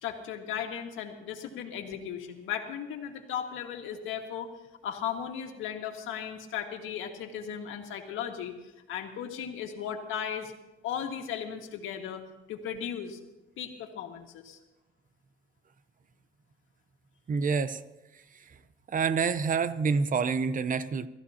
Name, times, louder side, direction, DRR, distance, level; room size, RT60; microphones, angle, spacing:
voice 1, 0.0-4.5 4.8-8.5 8.9-10.5 10.8-13.2 13.6-14.6, left 8 dB, 90° left, 3 dB, 1.9 m, -36 dB
voice 2, 17.3-17.8 18.1-18.6 18.9-21.1, right 5 dB, 40° right, 13 dB, 0.9 m, -28 dB
26.5 x 14.0 x 2.9 m, 1.0 s
cardioid pair, 90°, 20 cm